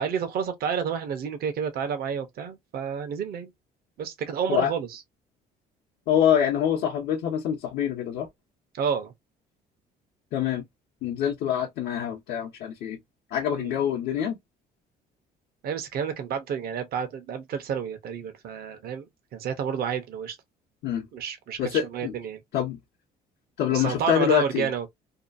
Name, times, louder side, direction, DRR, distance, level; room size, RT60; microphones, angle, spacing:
voice 1, 0.0-3.5 4.0-5.0 8.7-9.1 13.6-13.7 15.6-20.4 21.1-22.4 23.7-24.9, right 7 dB, 65° right, 0.9 m, -30 dB
voice 2, 6.1-8.3 10.3-10.6 11.0-13.0 13.3-14.4 20.8-21.1 21.6-22.1 22.5-22.8 23.6-24.7, left 9 dB, 80° left, 0.8 m, -25 dB
2.8 x 2.3 x 2.6 m
cardioid pair, 110°, 17 cm